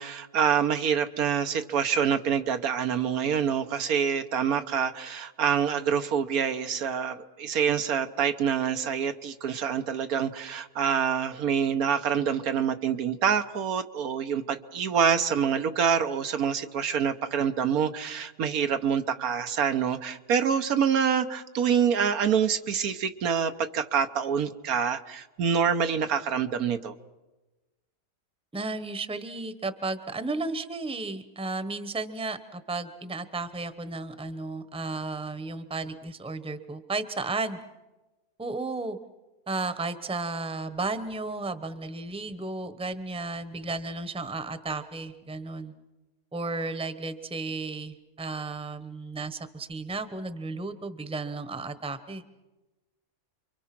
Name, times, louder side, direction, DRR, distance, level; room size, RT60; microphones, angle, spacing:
voice 1, 0.0-27.0, right 7 dB, 85° right, 8 dB, 1.5 m, -26 dB
voice 2, 28.5-37.6 38.4-39.0 39.5-45.7 46.3-52.3, right 3 dB, 5° right, 11 dB, 0.8 m, -33 dB
29.0 x 24.0 x 6.0 m, 1.1 s
omnidirectional pair, 1.5 m